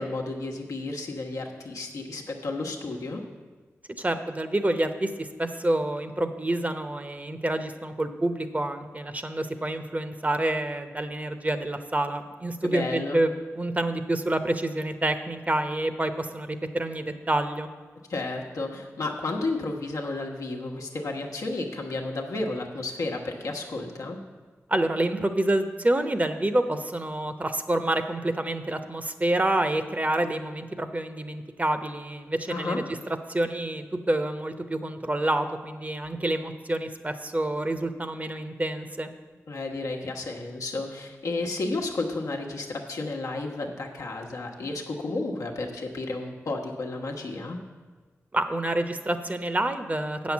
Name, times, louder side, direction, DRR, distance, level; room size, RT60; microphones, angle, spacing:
voice 1, 0.0-3.2 12.7-13.2 18.1-24.2 32.5-32.8 39.5-47.6, left 2 dB, 85° left, 0 dB, 1.1 m, -32 dB
voice 2, 4.0-17.7 24.7-33.0 33.3-39.1 48.3-50.3, right 1 dB, 30° right, 9 dB, 0.8 m, -28 dB
8.0 x 6.3 x 7.2 m, 1.4 s
cardioid pair, 50°, 5 cm